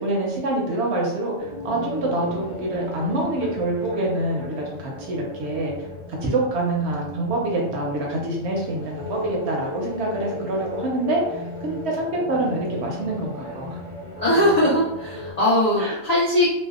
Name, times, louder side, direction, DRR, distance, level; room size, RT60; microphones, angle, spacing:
voice 1, 0.0-5.9 6.2-13.8 15.8-15.9, right 2 dB, 65° right, -1 dB, 0.7 m, -26 dB
sound 1, 1.4-15.3, left 1 dB, 25° left, 0.7 m, -36 dB
voice 2, 14.1-16.5, left 1 dB, 65° left, -6 dB, 0.4 m, -20 dB
2.6 x 2.1 x 2.3 m, 0.87 s
omnidirectional pair, 1.4 m